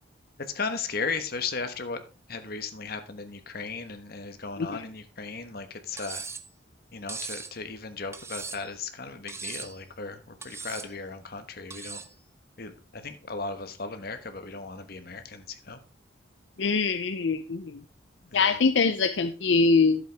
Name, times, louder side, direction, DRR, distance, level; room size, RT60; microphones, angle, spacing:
voice 1, 0.4-2.0 2.3-6.2 6.9-12.0 12.6-15.8 18.2-18.6, left 4 dB, 55° left, 8 dB, 1.2 m, -36 dB
Cutlery silverware, 6.0-6.5 7.1-7.5 8.1-8.7 9.3-9.8 10.4-10.9 11.7-12.1, right 5 dB, 15° right, 0.6 m, -39 dB
voice 2, 16.6-17.8 18.3-20.1, left 4 dB, 80° left, 9 dB, 0.6 m, -23 dB
11.0 x 7.7 x 3.4 m, 0.34 s
head